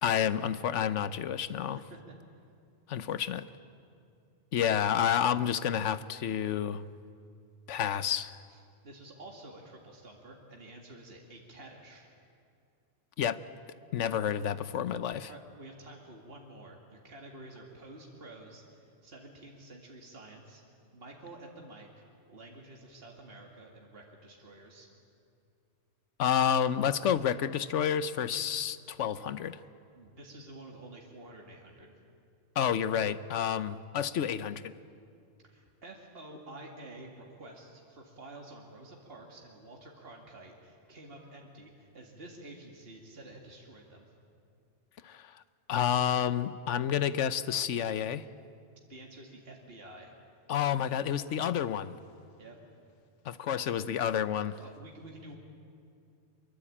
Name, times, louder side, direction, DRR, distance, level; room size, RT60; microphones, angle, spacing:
voice 1, 0.0-1.8 2.9-3.5 4.5-6.8 7.7-8.3 13.2-13.4 13.9-15.3 26.2-29.6 32.6-34.7 45.0-45.3 45.7-48.2 50.5-51.9 53.2-54.6, left 9 dB, 85° left, 14 dB, 1.1 m, -29 dB
voice 2, 8.5-12.1 15.3-20.6 20.9-24.9 29.9-31.9 35.4-44.1 48.9-50.1 52.4-52.6 53.5-53.6 54.6-55.4, right 2 dB, 55° right, 0 dB, 2.5 m, -50 dB
23.5 x 22.5 x 8.7 m, 2.4 s
omnidirectional pair, 1.2 m